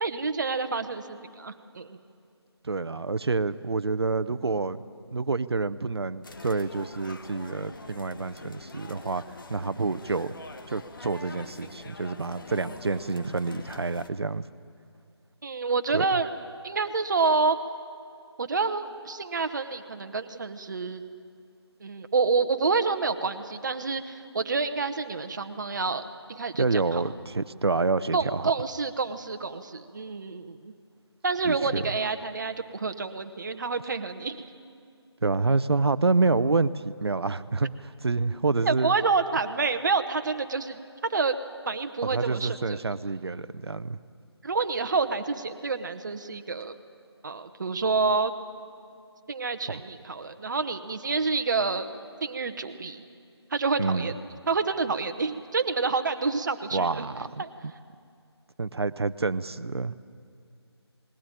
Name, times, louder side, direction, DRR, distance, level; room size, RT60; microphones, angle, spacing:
voice 1, 0.0-2.0 15.4-16.3 16.6-17.6 18.4-21.0 21.8-26.0 26.3-27.0 28.1-30.7 31.2-34.4 38.6-40.8 41.1-41.3 41.7-42.8 44.4-46.8 47.2-48.3 49.3-51.9 52.2-53.0 53.5-54.1 54.5-57.1 57.4-57.5, right 4 dB, 45° right, 8 dB, 1.1 m, -28 dB
voice 2, 2.7-4.8 5.1-9.2 9.5-10.3 10.7-14.4 15.9-16.1 26.6-28.5 31.4-31.8 35.2-38.9 42.0-44.0 49.7-49.8 53.8-54.1 56.7-57.4 58.6-59.9, right 3 dB, 65° right, 15 dB, 0.7 m, -28 dB
sound 1, 6.2-14.1, left 3 dB, 50° left, 1.3 m, -44 dB
20.0 x 17.0 x 9.0 m, 2.3 s
figure-of-eight pair, 160°, 14 cm